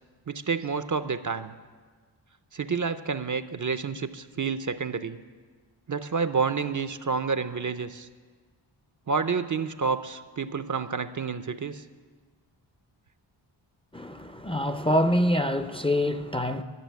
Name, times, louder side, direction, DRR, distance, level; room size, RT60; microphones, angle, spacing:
voice 1, 0.3-1.5 2.5-5.2 5.9-8.1 9.1-11.8, right 5 dB, 40° right, 0.6 m, -29 dB
voice 2, 13.9-16.6, equal, 10° left, 0.5 m, -25 dB
12.0 x 6.8 x 9.3 m
cardioid pair, 55°, 49 cm